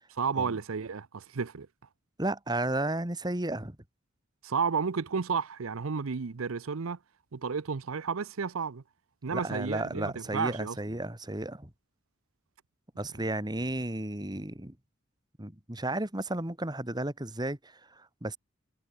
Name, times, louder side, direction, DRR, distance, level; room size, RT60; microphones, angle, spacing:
voice 1, 0.1-1.7 4.4-7.0 7.3-8.8 9.2-10.8, right 5 dB, 80° right, 0.7 m, -32 dB
voice 2, 2.2-3.8 9.3-11.7 13.0-14.7 15.4-18.4, right 1 dB, 20° right, 2.0 m, -33 dB
head